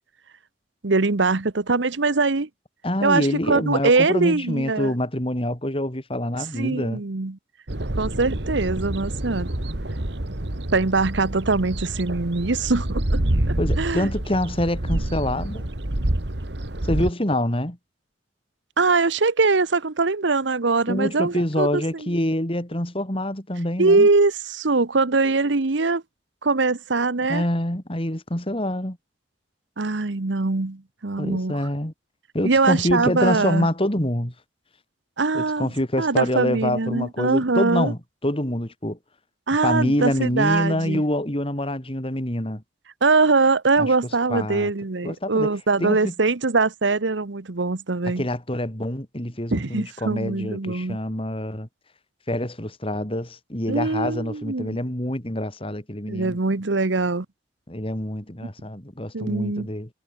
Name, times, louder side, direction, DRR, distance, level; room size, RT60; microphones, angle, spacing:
voice 1, 0.8-2.5 3.0-4.9 6.5-7.4 8.0-9.5 10.7-13.2 13.8-14.1 18.8-21.8 23.8-26.0 26.4-27.4 29.8-31.6 32.4-33.7 35.2-35.7 36.0-37.9 39.5-41.0 43.0-48.3 49.5-51.0 53.7-54.8 56.1-57.3 59.1-59.7, right 3 dB, 85° right, 1.1 m, -22 dB
voice 2, 2.8-7.0 13.6-15.7 16.8-17.8 20.9-24.1 27.3-29.0 31.2-31.9 32.3-34.3 35.3-39.0 39.5-42.6 43.8-43.9 44.3-44.7 45.0-45.5 45.8-46.1 48.2-51.7 52.3-56.4 57.7-59.9, left 1 dB, 30° left, 3.6 m, -26 dB
sound 1, 7.7-17.1, right 1 dB, 65° right, 2.0 m, -27 dB
head